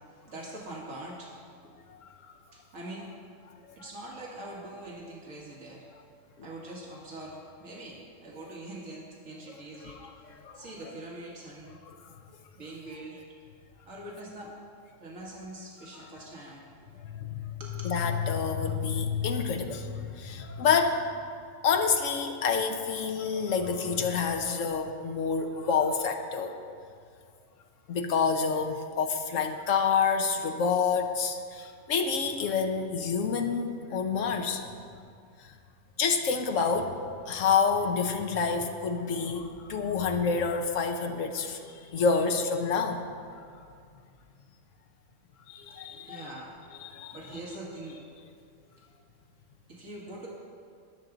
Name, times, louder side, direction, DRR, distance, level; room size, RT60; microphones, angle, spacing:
voice 1, 0.1-1.8 2.5-3.1 3.8-5.9 6.4-11.8 12.6-13.2 13.9-14.6 15.0-16.9 17.6-17.7 45.9-46.6 47.1-48.1 48.6-48.9 49.7-50.3, right 1 dB, 80° right, -3 dB, 2.0 m, -43 dB
voice 2, 17.0-21.0 21.6-26.5 27.9-34.6 35.4-35.5 36.0-37.0 37.3-43.0 45.5-46.3 46.8-47.2, left 5 dB, 75° left, 5 dB, 1.2 m, -28 dB
20.5 x 7.0 x 3.9 m, 2.3 s
omnidirectional pair, 1.3 m